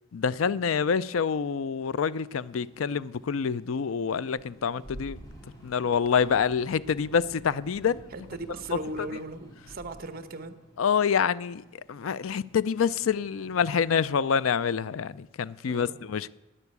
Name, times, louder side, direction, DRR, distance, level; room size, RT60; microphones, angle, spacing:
voice 1, 0.1-5.2 5.6-8.0 10.8-11.6 11.9-16.4, left 6 dB, 85° left, 0.4 m, -27 dB
sound 1, 2.2-13.8, right 1 dB, 20° left, 3.5 m, -51 dB
voice 2, 8.1-10.6 15.7-16.0, right 2 dB, 50° right, 1.1 m, -38 dB
12.0 x 9.9 x 8.2 m
head